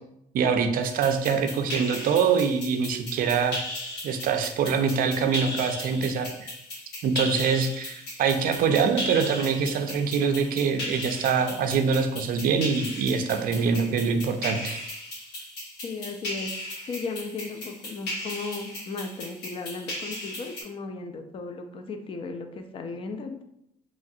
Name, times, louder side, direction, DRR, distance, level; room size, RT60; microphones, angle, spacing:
voice 1, 0.3-3.6 4.0-6.5 7.0-14.8, right 6 dB, 60° right, 7 dB, 0.4 m, -24 dB
sound 1, 0.8-20.6, left 1 dB, 90° left, 1.4 m, -37 dB
voice 2, 15.8-16.5 16.9-23.4, left 4 dB, 30° left, 6 dB, 0.4 m, -36 dB
3.0 x 2.4 x 2.7 m, 0.78 s
cardioid pair, 110°, 17 cm